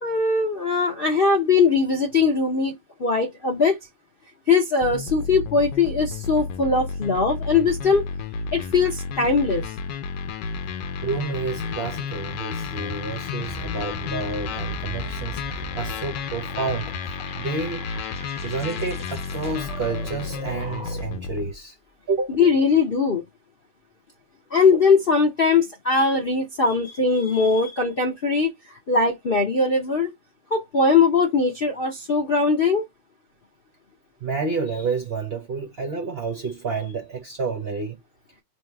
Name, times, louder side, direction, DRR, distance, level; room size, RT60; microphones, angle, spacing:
voice 1, 0.0-3.8 4.5-8.1 8.5-9.7 22.3-23.2 24.5-28.5 28.9-30.1 30.5-32.8, left 4 dB, 55° left, 0.6 m, -20 dB
sound 1, 4.8-21.5, left 5 dB, 80° left, 1.2 m, -32 dB
voice 2, 11.0-16.9 17.3-17.9 18.4-21.7 22.1-22.3 34.2-38.0, right 4 dB, 55° right, 0.7 m, -29 dB
sound 2, 13.4-21.3, right 3 dB, 5° right, 0.5 m, -40 dB
3.0 x 2.7 x 4.4 m
omnidirectional pair, 1.9 m